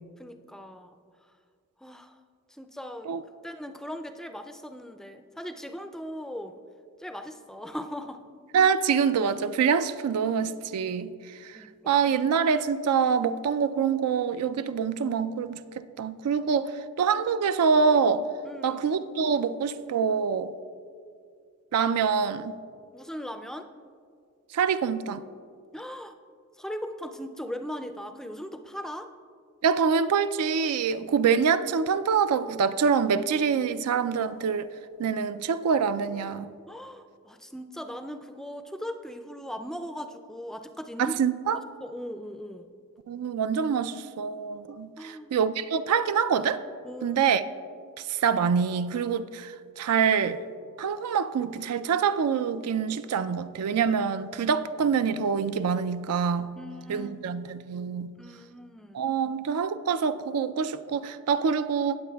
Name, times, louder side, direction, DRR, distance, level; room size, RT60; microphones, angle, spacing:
voice 1, 0.2-1.0 1.8-2.2 2.5-3.1 3.4-6.5 7.0-8.2 11.5-12.0 18.4-18.8 22.9-23.7 25.7-26.1 26.6-29.1 36.7-41.2 41.5-42.7 45.0-45.3 46.8-47.2 56.6-57.3 58.2-59.0, equal, ahead, 0.3 m, -39 dB
voice 2, 8.5-11.1 11.4-11.6 11.9-16.7 17.0-18.3 18.6-20.5 21.7-22.6 24.5-25.2 29.6-34.7 35.0-36.5 41.0-41.6 43.1-46.6 47.0-47.4 48.1-50.4 50.8-56.5 56.9-58.1 58.9-62.0, right 6 dB, 85° right, 0.4 m, -25 dB
17.5 x 7.7 x 2.3 m
head